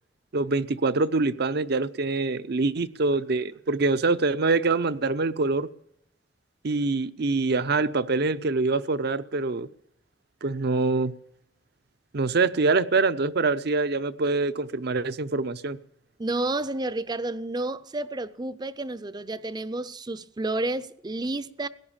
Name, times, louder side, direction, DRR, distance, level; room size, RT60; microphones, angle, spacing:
voice 1, 0.3-5.7 6.6-9.7 10.4-11.1 12.1-15.8, right 3 dB, 60° right, 0.7 m, -25 dB
voice 2, 16.2-21.7, right 2 dB, 25° right, 0.6 m, -30 dB
17.5 x 10.5 x 7.3 m
head